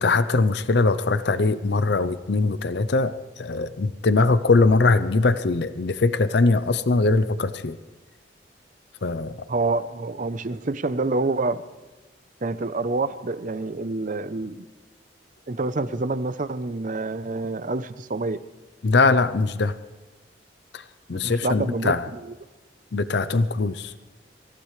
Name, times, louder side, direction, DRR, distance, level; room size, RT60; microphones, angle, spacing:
voice 1, 0.0-7.8 9.0-9.4 18.8-19.7 20.7-22.1 22.9-23.9, left 3 dB, 60° left, 13 dB, 0.6 m, -21 dB
voice 2, 9.5-11.6 12.4-14.7 15.5-18.4 21.1-22.2, right 3 dB, 45° right, 14 dB, 0.7 m, -27 dB
26.0 x 15.5 x 3.2 m, 1.2 s
head